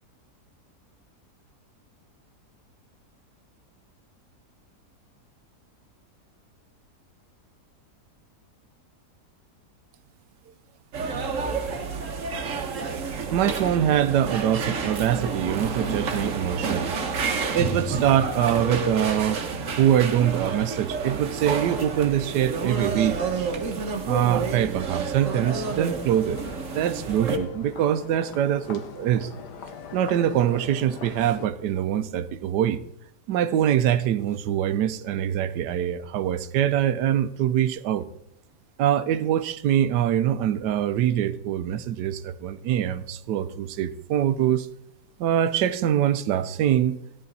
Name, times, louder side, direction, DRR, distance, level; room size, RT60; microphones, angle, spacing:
sound 1, 10.9-27.4, right 4 dB, 55° right, 1.4 m, -29 dB
voice 1, 13.3-16.9 17.5-23.2 24.1-26.4 26.7-29.3 29.9-32.8 33.3-38.1 38.8-44.7 45.2-47.0, right 10 dB, 90° right, 12 dB, 1.3 m, -24 dB
sound 2, 25.3-31.5, left 6 dB, 80° left, 1.6 m, -42 dB
14.5 x 10.5 x 4.1 m, 0.78 s
omnidirectional pair, 1.7 m